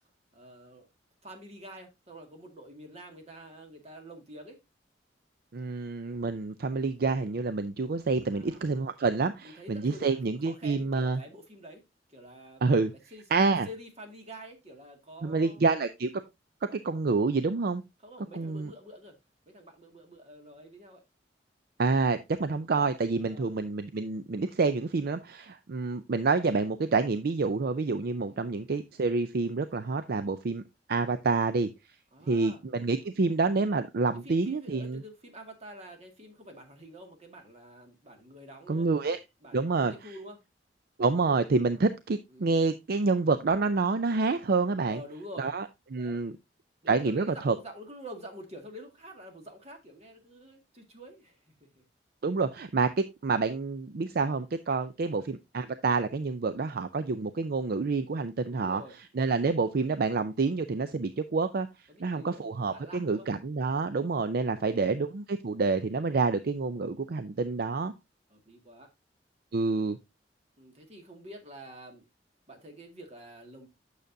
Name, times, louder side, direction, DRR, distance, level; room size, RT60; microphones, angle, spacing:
voice 1, 0.3-0.9 1.2-4.6 8.2-8.7 9.4-10.2 10.4-11.8 12.1-12.6 13.1-15.6 18.0-19.1 19.5-21.0 23.2-23.5 28.3-28.6 32.1-32.6 34.2-40.4 42.3-42.7 44.9-45.5 45.9-46.2 46.8-51.4 51.7-51.8 55.0-55.3 58.5-58.9 61.9-63.3 68.3-68.9 70.6-72.0 72.5-73.7, equal, 35° right, 2.0 m, -48 dB
voice 2, 5.5-11.2 12.6-12.9 13.3-13.7 15.2-16.1 16.7-17.8 18.3-18.7 21.8-30.6 30.9-31.7 32.3-35.0 38.7-39.2 39.5-39.9 41.0-45.0 45.4-45.6 45.9-46.3 46.9-47.6 52.2-58.8 59.2-61.7 62.0-67.9 69.5-70.0, right 4 dB, 60° right, 0.5 m, -28 dB
8.9 x 6.6 x 2.6 m
head